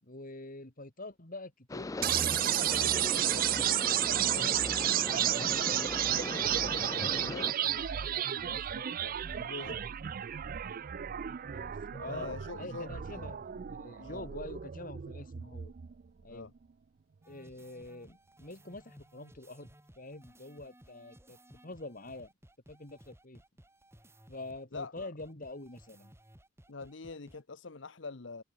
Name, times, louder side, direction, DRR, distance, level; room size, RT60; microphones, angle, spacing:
voice 1, 0.0-4.6 5.1-9.8 11.5-15.7 16.2-16.5 17.3-19.7 20.0-22.3 22.7-23.4 24.3-26.1, left 2 dB, 45° left, 2.8 m, -46 dB
sound 1, 1.7-7.5, left 2 dB, 15° left, 0.4 m, -39 dB
sound 2, 2.0-16.0, right 12 dB, 45° right, 0.4 m, -32 dB
voice 2, 9.4-9.8 12.1-13.3 14.0-14.2 16.3-16.5 24.7-25.1 26.7-28.4, left 3 dB, 65° left, 1.0 m, -44 dB
sound 3, 17.2-27.4, right 1 dB, 15° right, 4.0 m, -59 dB
head